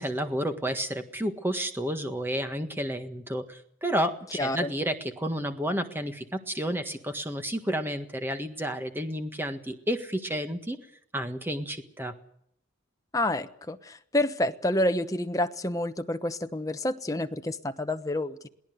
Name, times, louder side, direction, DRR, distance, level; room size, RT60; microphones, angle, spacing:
voice 1, 0.0-10.8 11.1-12.1, equal, 10° right, 7 dB, 1.6 m, -31 dB
voice 2, 4.4-4.7 13.1-18.5, left 1 dB, 15° left, 7 dB, 1.0 m, -28 dB
22.5 x 17.0 x 7.9 m, 0.71 s
head